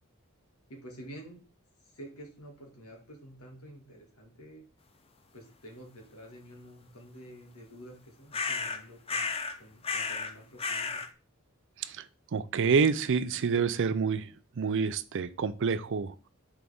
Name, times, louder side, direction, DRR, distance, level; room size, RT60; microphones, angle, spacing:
voice 1, 0.7-1.4 1.8-4.6 5.3-9.3 9.6-11.0, right 1 dB, 75° left, 1 dB, 2.0 m, -49 dB
sound 1, 8.3-8.8 9.1-9.6 9.8-10.3 10.6-11.1, left 4 dB, 25° left, 0.5 m, -32 dB
voice 2, 12.3-16.3, right 5 dB, 60° right, 13 dB, 0.5 m, -28 dB
6.2 x 4.5 x 3.6 m, 0.37 s
head